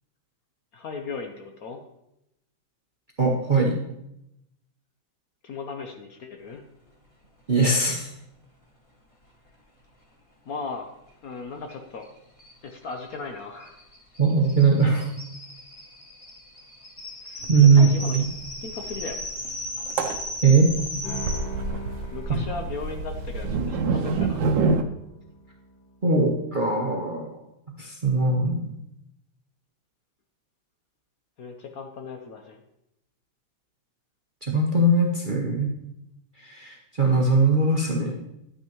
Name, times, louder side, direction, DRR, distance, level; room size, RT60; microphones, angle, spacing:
voice 1, 0.7-1.8 5.4-6.6 10.5-10.9 11.2-12.1 12.6-13.8 17.2-18.2 18.6-19.2 22.1-24.4 31.4-32.6, left 4 dB, 60° left, 4 dB, 1.1 m, -37 dB
voice 2, 3.2-3.8 7.5-8.1 14.2-15.1 17.5-18.3 20.4-20.7 22.3-22.4 26.0-27.3 27.8-28.7 34.4-35.7 36.4-38.1, right 3 dB, 40° right, -1 dB, 0.8 m, -20 dB
sound 1, 11.7-11.8 12.0-12.1 12.4-21.4, left 1 dB, 20° left, 1.4 m, -37 dB
sound 2, 17.4-17.5 17.8-17.9 18.1-24.8, right 4 dB, 75° right, 1.4 m, -27 dB
sound 3, 21.0-25.9, right 1 dB, 80° left, 4.9 m, -40 dB
11.0 x 9.2 x 3.0 m, 0.84 s
omnidirectional pair, 2.1 m